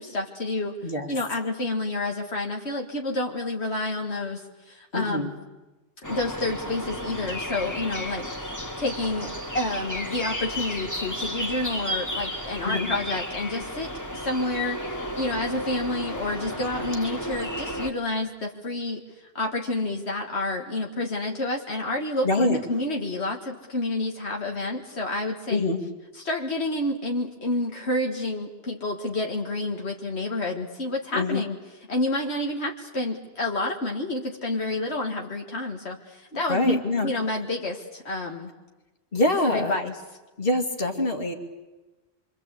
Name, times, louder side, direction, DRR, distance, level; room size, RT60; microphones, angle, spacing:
voice 1, 0.0-0.8 1.1-5.3 6.1-19.0 19.3-25.8 26.2-31.6 31.9-38.5 39.5-39.9, left 2 dB, 80° left, 1 dB, 2.2 m, -29 dB
voice 2, 4.9-5.3 12.6-12.9 22.2-22.6 25.5-25.8 31.1-31.4 36.5-37.1 39.1-39.8 40.4-41.3, left 2 dB, 60° left, 5 dB, 2.6 m, -25 dB
sound 1, 6.0-17.9, equal, 15° left, 1.9 m, -33 dB
26.5 x 25.5 x 8.3 m, 1.1 s
omnidirectional pair, 1.1 m